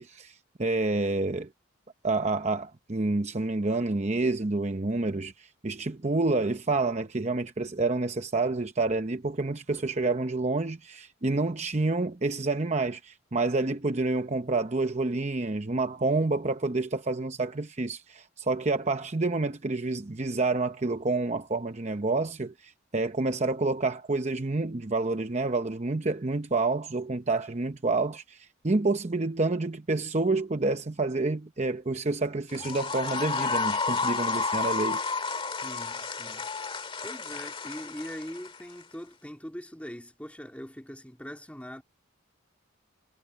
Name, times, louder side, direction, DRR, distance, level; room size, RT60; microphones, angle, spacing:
voice 1, 0.0-1.5 2.0-35.0, right 3 dB, 30° right, 0.8 m, -28 dB
sound 1, 32.5-38.8, left 4 dB, 25° left, 2.1 m, -31 dB
voice 2, 35.6-36.5 37.0-41.8, equal, 5° left, 3.3 m, -42 dB
head